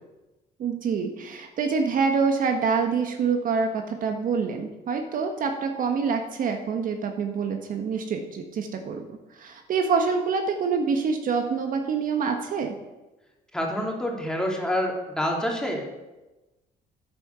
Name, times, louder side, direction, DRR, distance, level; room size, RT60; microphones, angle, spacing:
voice 1, 0.6-9.0 9.4-12.7, right 5 dB, 55° right, 5 dB, 1.4 m, -26 dB
voice 2, 13.5-15.8, left 1 dB, 5° left, 0 dB, 3.0 m, -27 dB
10.5 x 9.6 x 6.8 m, 1.1 s
cardioid pair, 110°, 17 cm